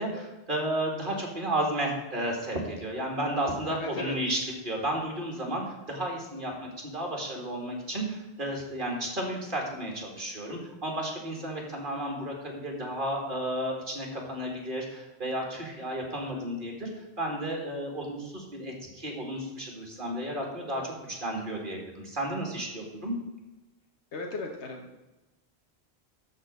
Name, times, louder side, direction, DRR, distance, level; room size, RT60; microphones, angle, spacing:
voice 1, 0.0-4.4 4.6-16.9 17.2-23.1, right 1 dB, 50° right, 0 dB, 2.6 m, -33 dB
voice 2, 3.7-4.2 24.1-25.1, left 3 dB, 80° left, 2 dB, 1.3 m, -37 dB
13.0 x 4.3 x 6.4 m, 1.1 s
omnidirectional pair, 1.1 m